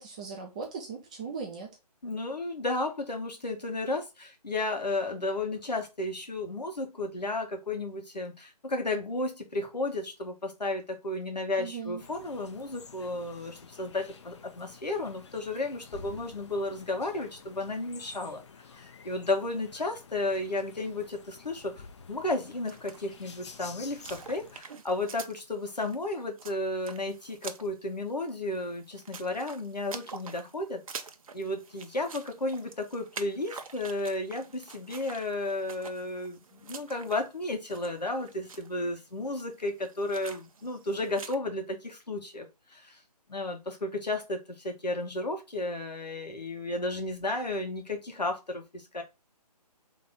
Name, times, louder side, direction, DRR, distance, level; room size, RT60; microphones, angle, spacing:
voice 1, 0.0-1.7 11.6-12.0, right 5 dB, 10° right, 0.4 m, -38 dB
voice 2, 2.0-18.4 18.7-31.1 31.3-43.0 43.3-49.0, left 2 dB, 80° left, 1.5 m, -33 dB
sound 1, 12.0-24.6, left 5 dB, 45° left, 0.6 m, -50 dB
sound 2, 22.6-41.4, right 5 dB, 55° right, 0.6 m, -47 dB
4.0 x 3.3 x 3.6 m
figure-of-eight pair, 145°, 21 cm